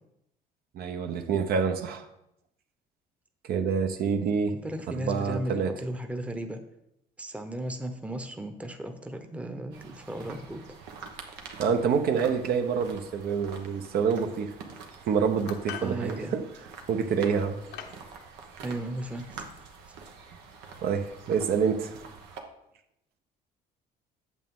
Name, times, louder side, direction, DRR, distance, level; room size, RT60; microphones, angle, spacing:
voice 1, 0.7-2.0 3.4-4.6 5.0-5.7 11.6-14.5 15.1-16.5 16.9-17.6 20.8-22.0, right 6 dB, 65° right, 6 dB, 0.9 m, -27 dB
voice 2, 4.6-6.6 7.2-10.6 15.8-16.3 18.6-19.4 19.9-20.0, right 1 dB, 10° right, 7 dB, 0.8 m, -35 dB
sound 1, 9.7-22.4, right 5 dB, 90° right, 1.2 m, -46 dB
sound 2, 15.5-16.0 16.9-17.1 17.7-18.0, left 9 dB, 85° left, 1.0 m, -40 dB
8.4 x 7.4 x 3.7 m, 0.82 s
cardioid pair, 110°, 17 cm